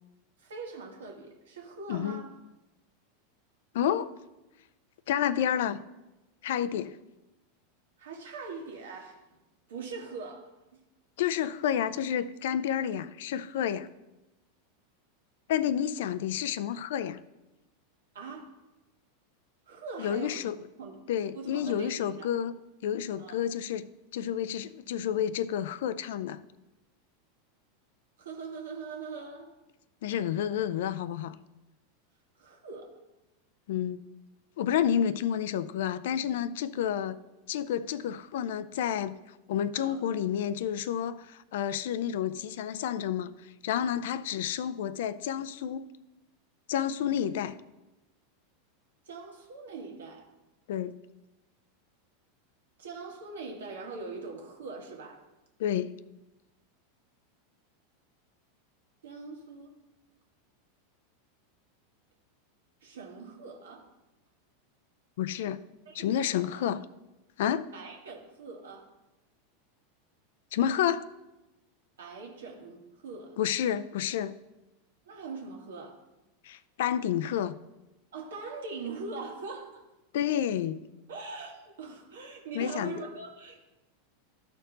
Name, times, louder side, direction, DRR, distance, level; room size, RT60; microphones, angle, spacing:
voice 1, 0.4-2.4 8.0-9.2 9.7-10.5 18.1-18.6 19.7-20.4 20.8-21.0 21.3-22.3 23.2-23.4 28.2-29.5 32.4-33.0 39.8-40.0 49.1-50.3 52.8-55.2 59.0-59.7 62.8-63.9 65.9-66.0 66.3-66.7 67.7-68.9 72.0-73.4 75.1-76.0 78.1-79.8 81.1-83.6, right 4 dB, 80° right, 1 dB, 1.7 m, -42 dB
voice 2, 1.9-2.2 3.7-4.1 5.1-5.8 6.4-7.0 11.2-13.9 15.5-17.2 20.0-20.6 21.1-22.5 22.8-23.9 24.1-26.4 30.0-31.4 33.7-34.0 34.6-37.2 37.5-39.1 39.5-43.3 43.6-45.9 46.7-47.6 50.7-50.9 55.6-55.9 65.2-65.6 65.9-66.8 67.4-67.7 70.5-71.1 73.4-74.3 76.4-77.5 80.1-80.9 82.5-83.0, left 9 dB, 70° left, 15 dB, 0.4 m, -30 dB
12.5 x 4.5 x 4.0 m, 1.0 s
hypercardioid pair, 100°, 0 cm